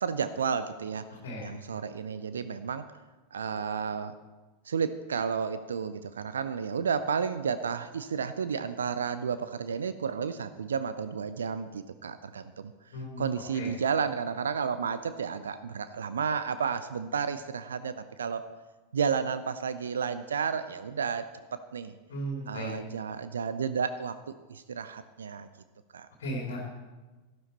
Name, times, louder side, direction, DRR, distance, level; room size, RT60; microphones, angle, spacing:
voice 1, 0.0-1.1 1.4-2.9 3.3-4.1 4.7-12.7 13.2-18.5 18.9-21.3 21.5-21.9 22.5-25.5 25.9-26.1, right 6 dB, 70° right, 12 dB, 0.5 m, -32 dB
voice 2, 1.1-1.5 12.9-13.2 13.5-13.7 22.1-22.7 26.2-26.7, equal, 60° left, 0 dB, 2.4 m, -36 dB
13.0 x 12.0 x 4.2 m, 1.2 s
figure-of-eight pair, 90°, 0 cm